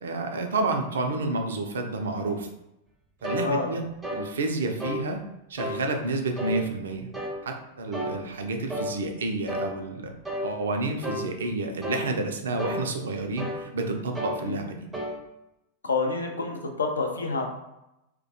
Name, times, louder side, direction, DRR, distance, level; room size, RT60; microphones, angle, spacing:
voice 1, 0.0-2.5 3.2-3.8 4.1-5.2 5.5-7.1 7.4-10.1 10.4-14.8, right 2 dB, 65° right, 4 dB, 0.3 m, -29 dB
sound 1, 3.2-3.5 4.0-4.3 4.8-5.0 5.6-5.8 6.4-6.6 7.1-7.4 7.9-8.2 8.7-8.9 9.5-9.7 10.2-10.5 11.0-11.3 11.8-12.1 12.6-12.8 13.4-13.6 14.1-14.4 14.9-15.1, equal, 5° right, 0.5 m, -31 dB
voice 2, 3.4-3.7 14.4-14.8 15.8-17.5, left 3 dB, 75° left, 3 dB, 0.4 m, -28 dB
2.2 x 2.1 x 2.7 m, 0.89 s
figure-of-eight pair, 90°, 0 cm